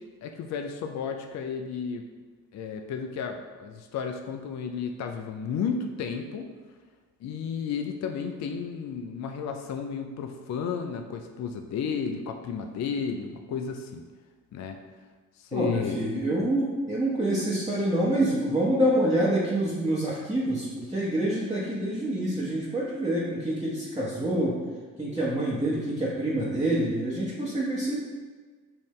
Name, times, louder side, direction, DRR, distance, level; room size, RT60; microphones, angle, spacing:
voice 1, 0.2-2.0 2.5-6.5 7.2-14.0 14.5-14.8 15.4-16.0, left 6 dB, 45° left, 4 dB, 0.5 m, -33 dB
voice 2, 15.5-24.6 25.0-28.0, right 1 dB, 10° right, -7 dB, 1.1 m, -26 dB
5.6 x 2.7 x 3.2 m, 1.5 s
hypercardioid pair, 50°, 41 cm